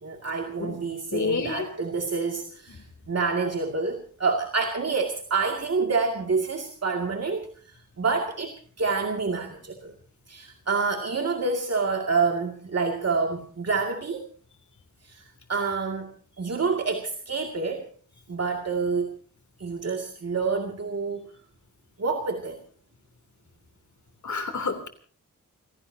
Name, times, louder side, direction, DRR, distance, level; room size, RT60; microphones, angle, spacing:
voice 1, 0.0-9.9 10.3-14.3 15.0-16.1 16.4-17.9 18.3-19.1 19.6-21.3 22.0-22.6, right 4 dB, 50° right, 2 dB, 2.3 m, -28 dB
voice 2, 1.1-1.7 24.2-24.9, left 4 dB, 65° left, 7 dB, 3.2 m, -28 dB
30.0 x 17.0 x 2.8 m, 0.41 s
wide cardioid pair, 125°, 32 cm